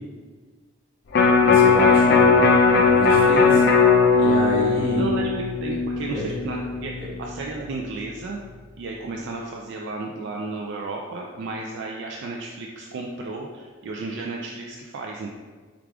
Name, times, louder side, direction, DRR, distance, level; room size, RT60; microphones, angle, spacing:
Electric guitar, 1.1-7.4 7.7-7.8, left 4 dB, 55° left, 0.4 m, -18 dB
voice 1, 1.4-3.6 4.2-5.1 6.1-6.3, equal, 25° right, -9 dB, 1.5 m, -29 dB
voice 2, 5.0-6.9 7.2-8.4 8.8-15.3, right 3 dB, 55° right, -1 dB, 0.3 m, -33 dB
4.7 x 2.4 x 3.5 m, 1.4 s
head